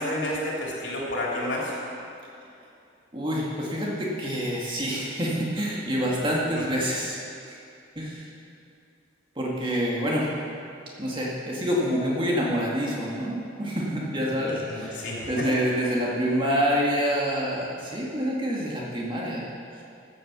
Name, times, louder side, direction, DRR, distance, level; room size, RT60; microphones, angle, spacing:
voice 1, 0.0-1.8 6.6-6.7 14.3-15.6, left 1 dB, 65° left, -4 dB, 3.3 m, -31 dB
voice 2, 3.1-7.2 7.5-7.6 8.0-8.3 9.4-10.3 11.0-19.4, equal, 25° right, -5 dB, 2.1 m, -27 dB
14.5 x 7.9 x 6.9 m, 2.5 s
head